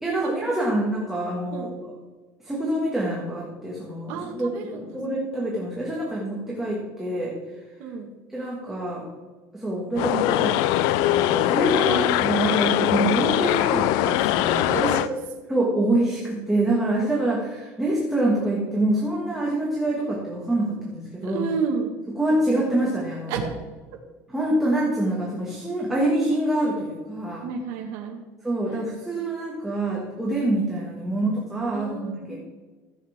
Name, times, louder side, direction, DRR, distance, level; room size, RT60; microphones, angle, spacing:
voice 1, 0.0-1.9 2.4-7.3 8.3-9.1 9.5-15.0 15.5-21.4 22.1-23.3 24.3-27.5 28.4-32.4, right 1 dB, 5° right, -5 dB, 1.9 m, -26 dB
voice 2, 4.1-4.9 7.8-8.1 11.9-12.6 14.4-15.1 21.2-21.9 23.3-23.4 27.4-28.2 31.7-32.4, right 5 dB, 75° right, 0 dB, 1.7 m, -31 dB
sound 1, 10.0-15.1, left 14 dB, 70° left, 0.4 m, -22 dB
14.5 x 8.2 x 3.6 m, 1.3 s
cardioid pair, 165°, 7 cm